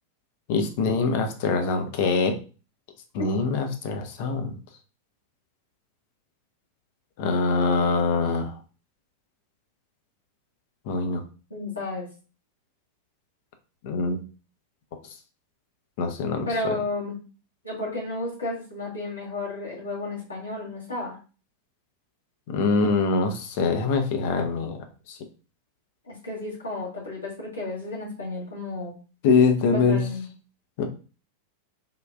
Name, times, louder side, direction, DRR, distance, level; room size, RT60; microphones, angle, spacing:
voice 1, 0.5-2.3 3.1-4.6 7.2-8.5 10.9-11.2 13.8-14.2 16.0-16.8 22.5-25.2 29.2-30.1 30.8-30.9, left 4 dB, 50° left, 6 dB, 0.5 m, -24 dB
voice 2, 11.5-12.1 16.5-17.2 17.6-21.2 26.1-28.9 29.7-30.2, left 2 dB, 75° left, -4 dB, 1.2 m, -32 dB
3.5 x 2.3 x 2.3 m, 0.35 s
figure-of-eight pair, 90°, 0 cm